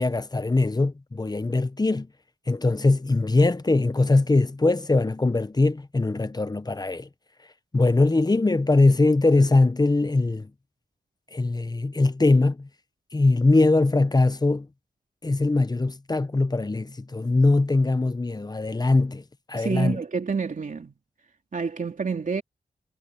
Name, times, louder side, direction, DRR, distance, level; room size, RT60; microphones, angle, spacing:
voice 1, 0.0-2.1 2.5-7.1 7.7-10.5 11.3-12.7 13.1-14.7 15.2-19.2 19.5-20.0, left 2 dB, 25° left, 0.9 m, -21 dB
voice 2, 19.5-20.9 21.5-22.4, right 5 dB, 55° right, 3.4 m, -28 dB
wide cardioid pair, 75°, 16 cm